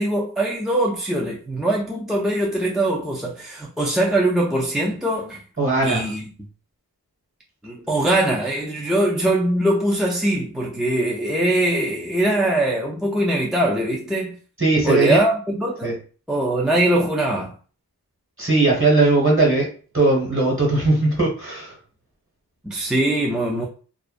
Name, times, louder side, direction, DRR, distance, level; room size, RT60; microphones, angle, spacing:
voice 1, 0.0-5.4 5.8-6.3 7.6-14.4 14.8-16.0 16.3-17.5 22.6-23.7, right 1 dB, ahead, 0.3 m, -22 dB
voice 2, 5.6-6.1 14.6-15.2 15.8-15.9 18.4-21.7, right 3 dB, 35° right, 1.3 m, -19 dB
2.4 x 2.1 x 2.4 m
wide cardioid pair, 50°, 37 cm